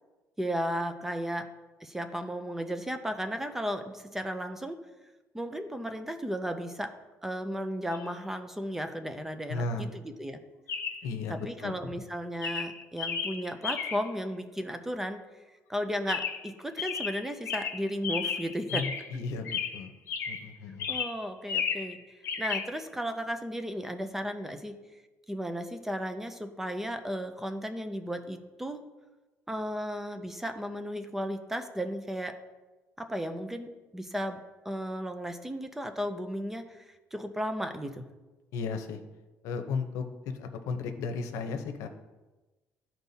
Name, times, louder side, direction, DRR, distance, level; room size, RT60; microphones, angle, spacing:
voice 1, 0.4-1.5 1.8-4.8 5.3-6.9 7.2-9.9 10.2-10.4 11.3-15.2 15.7-18.8 20.9-24.8 25.3-28.8 29.5-32.3 33.0-34.4 34.7-38.0, equal, 5° right, 7 dB, 0.4 m, -34 dB
Chirp tweet, 7.9-8.1 10.7-11.1 11.8-12.1 12.4-14.1 16.1-16.5 16.8-19.2 19.4-20.5 20.8-21.9 22.2-22.7, left 6 dB, 55° left, 0.8 m, -33 dB
voice 2, 9.5-9.9 11.0-11.7 18.7-19.9 20.3-20.9 38.5-39.0 39.4-41.9, left 4 dB, 85° left, 7 dB, 0.7 m, -35 dB
13.0 x 4.5 x 2.7 m, 1.2 s
cardioid pair, 175°, 5 cm